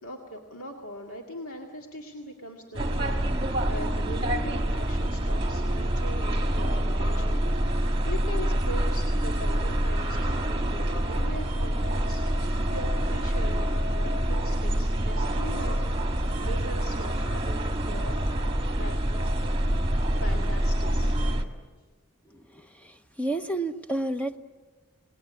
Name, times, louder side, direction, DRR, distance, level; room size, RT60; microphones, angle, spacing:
voice 1, 0.0-16.0 16.4-19.0 20.0-21.2, equal, 70° left, 1 dB, 2.2 m, -41 dB
sound 1, 2.7-21.4, right 1 dB, 20° right, 1.6 m, -26 dB
voice 2, 22.3-24.4, right 2 dB, 5° left, 8 dB, 0.7 m, -31 dB
28.5 x 19.5 x 8.3 m, 1.4 s
head